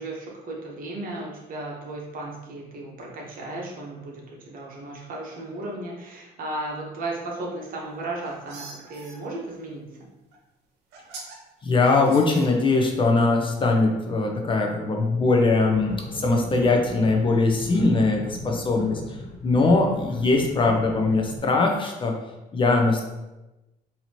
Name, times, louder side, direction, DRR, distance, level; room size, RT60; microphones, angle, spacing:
voice 1, 0.0-9.9, right 2 dB, 55° right, -2 dB, 1.1 m, -35 dB
sound 1, 7.9-9.2 10.3-10.4 10.9-11.4 11.9-12.9, right 3 dB, 80° right, 0.9 m, -43 dB
voice 2, 11.6-19.2 19.4-22.2 22.5-23.0, left 3 dB, 30° left, 2 dB, 0.5 m, -21 dB
sound 2, 15.7-21.4, left 1 dB, 60° left, 1.2 m, -37 dB
4.1 x 2.8 x 2.9 m, 1.0 s
cardioid pair, 110°, 17 cm